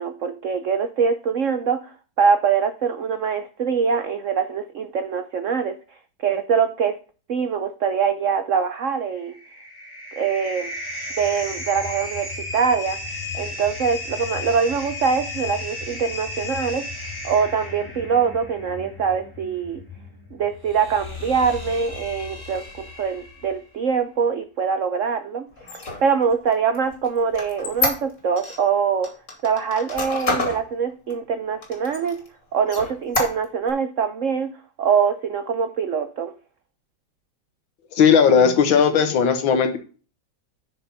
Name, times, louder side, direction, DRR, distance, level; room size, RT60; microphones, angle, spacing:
voice 1, 0.0-5.8 6.2-7.0 7.3-9.3 10.1-10.7 11.2-13.0 13.3-16.8 17.2-19.8 20.3-29.1 29.4-32.2 32.5-34.5 34.8-36.3, right 6 dB, 85° right, 9 dB, 0.6 m, -23 dB
sound 1, 9.0-23.6, left 2 dB, 10° left, 2.8 m, -34 dB
Squeak, 25.6-28.6 29.0-30.6 31.1-31.2 31.6-32.3 32.7-33.7, left 3 dB, 40° left, 2.6 m, -27 dB
voice 2, 38.0-39.8, left 6 dB, 75° left, 8 dB, 2.0 m, -16 dB
7.0 x 6.2 x 5.3 m, 0.38 s
omnidirectional pair, 2.2 m